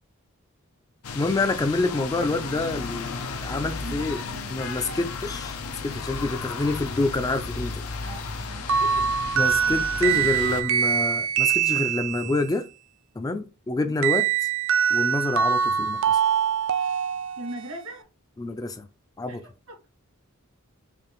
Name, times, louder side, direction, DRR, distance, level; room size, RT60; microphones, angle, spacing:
sound 1, 1.0-10.6, left 4 dB, 85° left, 0.6 m, -34 dB
voice 1, 1.1-4.2 4.5-7.8 9.3-12.7 13.2-14.5 14.9-16.2 18.4-18.9 19.2-19.4, left 2 dB, 15° left, 0.3 m, -27 dB
voice 2, 2.0-2.6 3.8-4.6 4.8-5.2 8.0-9.0 9.7-10.3 17.4-18.1 19.3-19.9, right 1 dB, 85° right, 2.2 m, -41 dB
sound 2, 8.7-12.4 14.0-17.8, right 8 dB, 60° right, 0.4 m, -24 dB
5.0 x 2.5 x 3.0 m
head